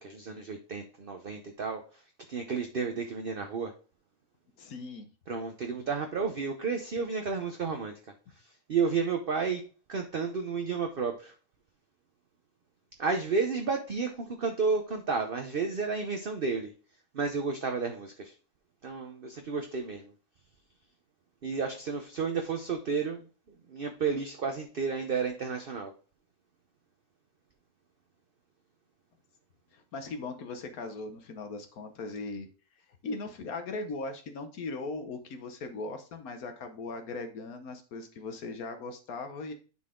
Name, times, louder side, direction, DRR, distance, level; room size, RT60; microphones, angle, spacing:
voice 1, 0.0-2.0 2.3-3.7 5.3-7.9 8.4-11.3 13.0-16.7 17.1-18.3 18.8-20.1 21.4-23.3 23.7-25.9, right 5 dB, 45° right, 4 dB, 0.9 m, -32 dB
voice 2, 4.6-5.1 29.7-32.5 33.0-39.5, left 3 dB, 75° left, 6 dB, 1.4 m, -39 dB
9.5 x 4.1 x 3.7 m, 0.37 s
omnidirectional pair, 1.6 m